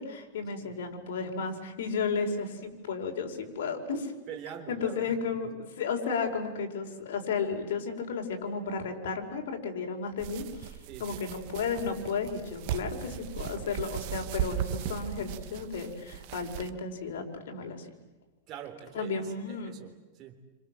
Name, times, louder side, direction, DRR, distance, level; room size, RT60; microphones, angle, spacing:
voice 1, 0.0-4.1 4.7-17.9 18.9-19.8, left 5 dB, 75° left, 5.0 m, -33 dB
voice 2, 4.3-5.2 5.4-5.6 10.9-11.2 18.5-20.4, right 9 dB, 30° right, 3.7 m, -44 dB
sound 1, 10.2-16.7, right 11 dB, 45° right, 1.4 m, -37 dB
29.0 x 26.5 x 7.7 m
supercardioid pair, 160°, 0 cm